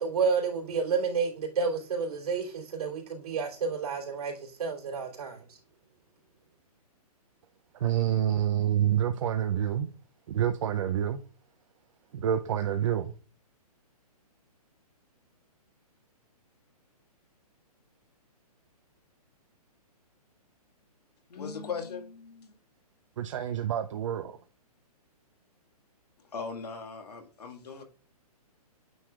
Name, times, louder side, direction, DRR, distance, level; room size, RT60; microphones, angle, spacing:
voice 1, 0.0-5.6, right 5 dB, 70° right, 3.2 m, -30 dB
voice 2, 7.7-9.9 10.3-11.2 12.1-13.1 23.2-24.3, right 10 dB, 50° right, 0.6 m, -27 dB
voice 3, 21.3-22.5 26.2-27.8, left 5 dB, 80° left, 1.9 m, -39 dB
9.2 x 4.8 x 2.4 m
hypercardioid pair, 150°, 20 cm